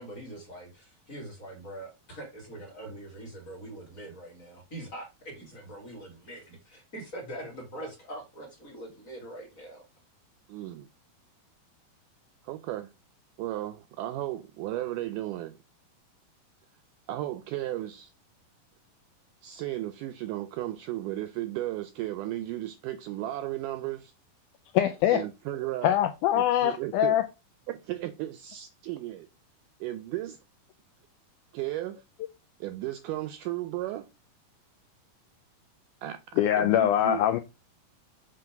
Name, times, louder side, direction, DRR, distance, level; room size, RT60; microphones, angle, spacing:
voice 1, 0.0-9.8, right 1 dB, 30° left, 1.6 m, -43 dB
voice 2, 10.5-10.9 12.4-12.9 13.4-15.6 17.1-18.1 19.4-24.1 25.1-26.0 26.4-27.2 27.7-29.3 29.8-30.4 31.5-32.0 32.6-34.1 36.0-37.2, right 15 dB, 85° right, 1.9 m, -35 dB
voice 3, 24.7-25.2 25.8-27.2 36.4-37.4, left 11 dB, 90° left, 1.8 m, -23 dB
7.5 x 3.3 x 5.8 m
omnidirectional pair, 4.2 m